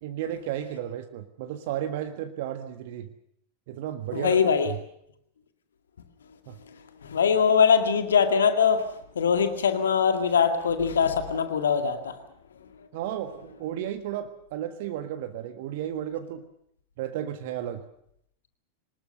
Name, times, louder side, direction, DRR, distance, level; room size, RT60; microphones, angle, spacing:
voice 1, 0.0-3.1 3.7-4.4 4.7-4.8 6.5-6.6 12.9-16.4 17.0-17.9, right 11 dB, 50° right, 7 dB, 1.6 m, -33 dB
voice 2, 4.1-4.7 7.0-8.9 9.2-12.1, left 6 dB, 65° left, 8 dB, 2.0 m, -22 dB
24.5 x 20.0 x 6.7 m, 0.72 s
figure-of-eight pair, 90°, 0 cm